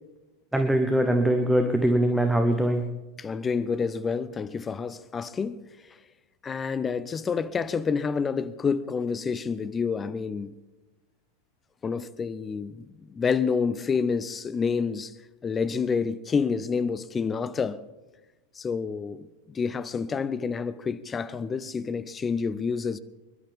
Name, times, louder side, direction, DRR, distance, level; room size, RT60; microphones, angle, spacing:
voice 1, 0.5-2.8, right 1 dB, 5° right, 1.2 m, -22 dB
voice 2, 3.2-5.6 6.4-10.5 11.8-15.1 15.4-17.8 18.6-23.0, left 5 dB, 20° left, 0.6 m, -28 dB
25.0 x 11.5 x 3.6 m
figure-of-eight pair, 90°, 0 cm